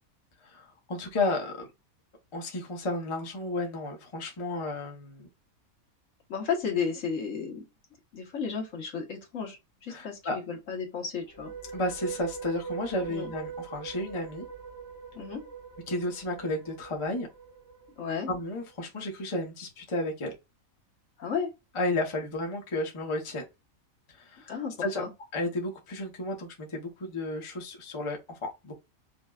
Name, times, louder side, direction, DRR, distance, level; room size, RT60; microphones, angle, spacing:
voice 1, 0.4-1.7 2.3-5.3 9.9-10.4 11.7-14.5 15.9-17.3 18.3-20.3 21.7-23.4 24.2-24.5 24.8-25.0 25.3-28.7, left 2 dB, 25° left, 0.8 m, -32 dB
voice 2, 6.3-7.6 8.1-11.5 13.1-13.3 15.1-15.4 18.0-18.3 21.2-21.5 24.5-25.1, left 6 dB, 65° left, 1.4 m, -33 dB
sound 1, 11.2-18.5, right 6 dB, 35° right, 0.7 m, -42 dB
5.2 x 2.2 x 2.3 m
omnidirectional pair, 1.5 m